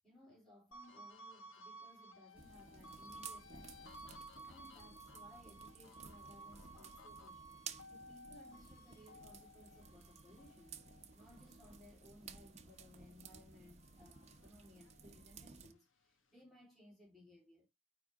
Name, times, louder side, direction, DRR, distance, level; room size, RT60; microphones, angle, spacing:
voice 1, 0.0-4.0 4.4-7.6 7.9-10.8 11.1-17.7, left 1 dB, ahead, 4.0 m, -62 dB
sound 1, 0.7-13.3 13.7-15.4, right 1 dB, 90° left, 1.4 m, -56 dB
sound 2, 2.3-15.7, right 6 dB, 35° right, 0.9 m, -56 dB
9.9 x 3.8 x 3.6 m
head